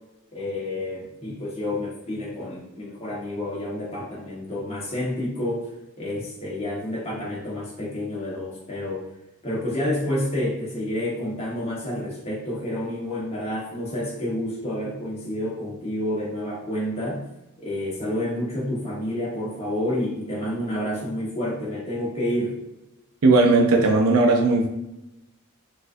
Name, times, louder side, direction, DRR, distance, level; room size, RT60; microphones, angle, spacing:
voice 1, 0.3-5.7 6.0-9.0 9.4-17.2 17.6-22.5, left 1 dB, 30° left, -6 dB, 1.2 m, -29 dB
voice 2, 23.2-24.7, right 3 dB, 75° right, 2 dB, 0.4 m, -17 dB
4.0 x 2.5 x 2.6 m, 0.93 s
head